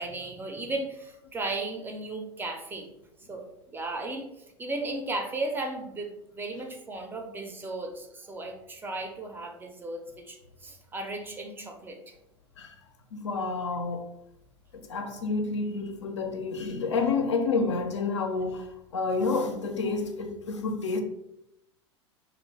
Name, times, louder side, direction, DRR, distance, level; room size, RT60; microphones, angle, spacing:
voice 1, 0.0-2.9 3.3-12.1, right 2 dB, 15° right, 0.4 m, -35 dB
voice 2, 13.1-14.1 14.7-18.7 18.9-21.0, left 4 dB, 75° left, 0.4 m, -29 dB
2.4 x 2.0 x 3.1 m
figure-of-eight pair, 85°, 15 cm